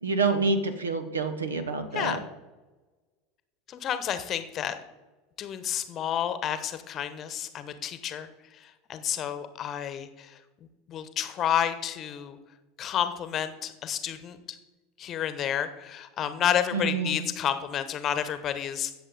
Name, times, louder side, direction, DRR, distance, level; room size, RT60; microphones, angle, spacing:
voice 1, 0.0-2.2 16.7-17.3, right 4 dB, 75° right, 10 dB, 1.0 m, -27 dB
voice 2, 3.7-4.8 5.4-8.3 8.6-10.4 10.9-12.4 12.8-14.6 15.0-19.0, left 9 dB, 35° left, 11 dB, 1.0 m, -30 dB
15.5 x 7.0 x 4.0 m, 1.2 s
figure-of-eight pair, 75°, 0 cm